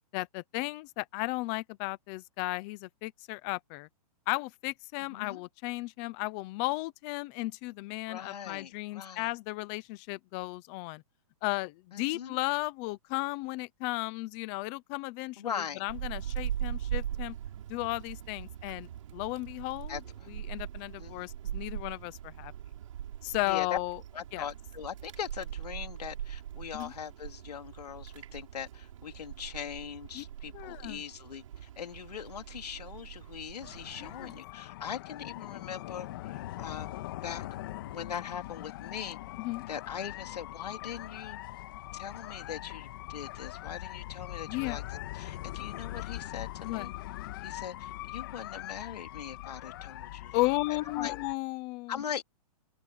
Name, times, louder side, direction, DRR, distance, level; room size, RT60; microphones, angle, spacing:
voice 1, 0.1-3.9 4.3-11.0 11.4-15.5 15.8-17.4 17.7-20.0 20.3-22.5 23.2-24.0 24.3-24.5 26.7-26.9 30.1-30.2 30.5-31.0 34.0-34.3 39.4-39.6 44.5-44.8 46.6-46.9 50.3-52.0, left 22 dB, 10° left, 0.3 m, -34 dB
voice 2, 5.1-5.4 8.1-9.3 11.9-12.4 15.4-15.8 19.9-20.0 21.0-21.3 23.4-23.8 24.1-37.5 37.8-39.2 39.7-41.4 41.9-46.9 47.4-50.4 51.0-51.1 51.9-52.2, left 8 dB, 85° left, 3.4 m, -41 dB
Wind, 15.9-34.4, right 10 dB, 55° right, 7.0 m, -41 dB
sound 1, 33.6-51.3, left 15 dB, 35° left, 1.5 m, -42 dB
open air
hypercardioid pair, 170°, 20 cm